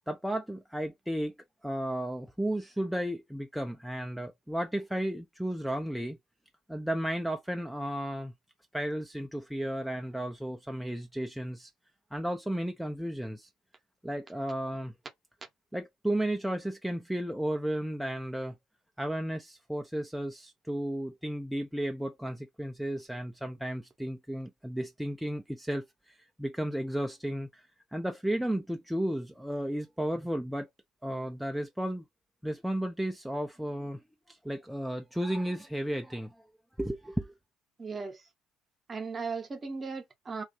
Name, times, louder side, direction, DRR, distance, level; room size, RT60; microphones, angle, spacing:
voice 1, 0.1-1.4 1.6-6.2 6.7-8.3 8.7-11.7 12.1-13.5 14.0-14.9 15.7-18.5 19.0-27.6 27.9-30.7 31.0-32.0 32.4-34.0 34.3-36.3 36.8-37.4, right 1 dB, ahead, 0.4 m, -33 dB
voice 2, 37.8-38.2 38.9-40.4, right 4 dB, 30° right, 0.8 m, -37 dB
2.3 x 2.3 x 2.7 m
figure-of-eight pair, 50°, 0 cm